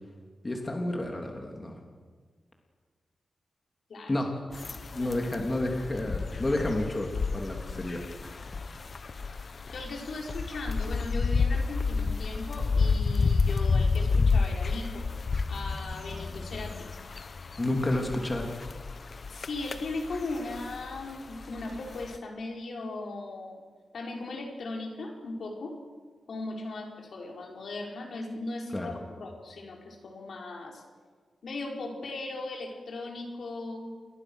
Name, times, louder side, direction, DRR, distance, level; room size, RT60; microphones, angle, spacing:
voice 1, 0.4-1.8 4.1-4.3 4.9-8.4 17.6-18.5 28.7-28.9, left 1 dB, 25° left, 1 dB, 3.4 m, -30 dB
sound 1, 4.5-22.2, left 4 dB, 45° left, 1.1 m, -30 dB
voice 2, 4.6-5.2 9.5-15.1 15.5-16.9 19.3-23.6 23.9-25.8 26.3-30.8 31.4-33.9, left 2 dB, 70° left, 0 dB, 5.2 m, -38 dB
29.5 x 22.0 x 6.5 m, 1.5 s
wide cardioid pair, 95°, 0 cm